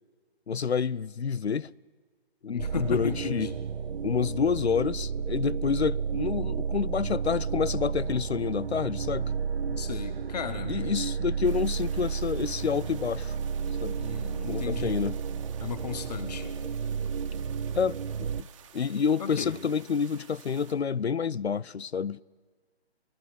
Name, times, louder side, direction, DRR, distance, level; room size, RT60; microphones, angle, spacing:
voice 1, 0.5-1.7 2.4-3.5 4.0-9.3 10.7-13.4 13.8-14.0 14.5-15.2 17.7-18.5 18.7-22.2, left 6 dB, 80° left, 0.6 m, -28 dB
voice 2, 2.5-3.5 9.7-10.7 14.0-15.0 15.6-16.5 19.2-19.5, left 6 dB, 40° left, 1.6 m, -35 dB
sound 1, 2.6-18.4, right 6 dB, 60° right, 0.5 m, -32 dB
sound 2, 11.4-20.8, right 8 dB, 30° right, 1.8 m, -53 dB
23.0 x 15.0 x 9.7 m
figure-of-eight pair, 145°, 32 cm